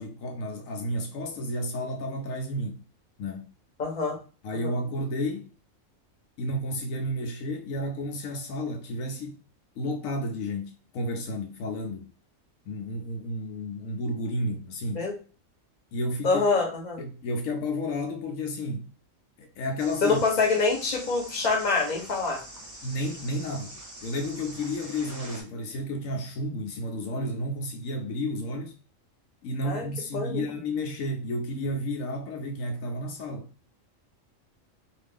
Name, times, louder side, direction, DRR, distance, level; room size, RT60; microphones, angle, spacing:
voice 1, 0.0-2.8 3.2-3.5 4.4-5.5 6.4-9.4 9.8-12.1 12.7-15.1 15.9-16.4 17.0-18.9 19.4-20.2 22.8-23.7 24.0-28.8 29.4-33.5, left 1 dB, 80° left, 1.0 m, -32 dB
voice 2, 3.8-4.2 4.5-4.7 14.9-15.1 16.2-17.0 20.0-22.4 29.6-29.9 30.1-30.4, left 4 dB, 40° left, 0.9 m, -25 dB
sound 1, 19.8-25.4, right 1 dB, 15° right, 0.7 m, -44 dB
2.6 x 2.4 x 3.4 m
omnidirectional pair, 1.4 m